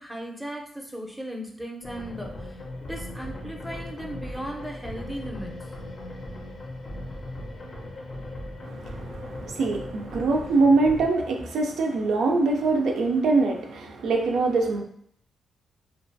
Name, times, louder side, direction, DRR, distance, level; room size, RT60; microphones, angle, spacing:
voice 1, 0.0-2.6 2.9-5.5, equal, ahead, 0 dB, 0.5 m, -37 dB
Dark Synth Drone Action Mood Atmo Cinematic Film Music, 1.8-11.1, left 1 dB, 50° left, 0.5 m, -38 dB
voice 2, 8.6-14.8, right 3 dB, 80° right, 2 dB, 0.3 m, -23 dB
2.5 x 2.2 x 2.5 m, 0.66 s
cardioid pair, 70°, 0 cm